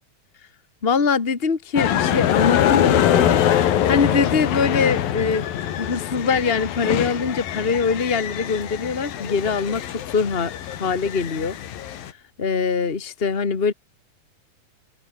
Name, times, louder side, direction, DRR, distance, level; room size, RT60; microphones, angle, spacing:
voice 1, 0.8-5.4 5.8-10.5 10.8-11.6 11.9-12.1 12.4-13.7, left 5 dB, 55° left, 0.6 m, -23 dB
sound 1, 1.8-12.1, left 10 dB, 85° left, 3.7 m, -23 dB
omnidirectional pair, 4.0 m